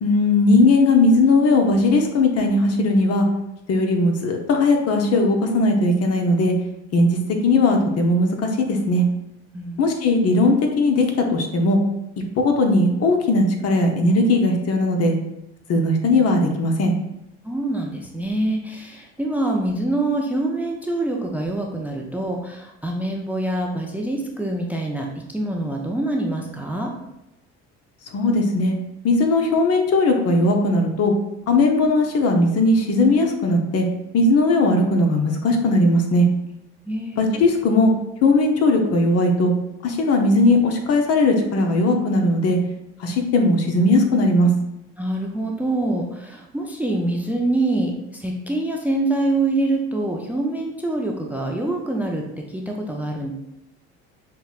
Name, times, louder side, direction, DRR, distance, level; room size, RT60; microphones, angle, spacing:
voice 1, 0.0-3.3 3.7-6.5 6.9-9.0 9.8-11.8 12.4-15.2 15.7-16.9 28.1-28.7 29.0-31.1 31.5-33.9 34.1-36.3 37.2-37.9 38.2-39.5 39.8-42.6 43.0-44.5, left 2 dB, 50° left, 3 dB, 0.7 m, -18 dB
voice 2, 17.4-25.1 25.3-26.9 36.9-37.2 45.0-53.3, right 2 dB, 5° right, 1 dB, 0.4 m, -25 dB
5.6 x 2.1 x 2.4 m, 0.87 s
supercardioid pair, 80°, 31 cm